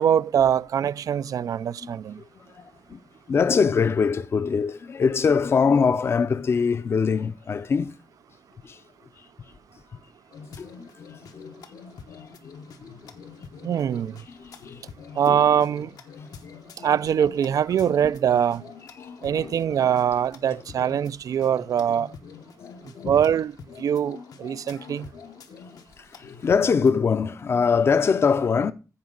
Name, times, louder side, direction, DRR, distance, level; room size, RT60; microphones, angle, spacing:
voice 1, 0.0-2.2 13.6-14.2 15.2-15.9 16.8-18.6 19.2-22.1 23.0-23.5 23.8-25.1, right 9 dB, 70° right, 0.4 m, -23 dB
voice 2, 1.8-3.0 3.3-7.9 8.6-8.8 10.6-10.9 11.3-11.6 13.0-13.1 14.3-14.8 15.3-15.4 19.3-19.5 20.8-20.9 22.6-23.2 26.0-28.7, left 5 dB, 40° left, 0.5 m, -23 dB
sound 1, 10.3-27.0, left 6 dB, 80° left, 1.1 m, -45 dB
15.0 x 5.1 x 3.8 m
wide cardioid pair, 150°, 6 cm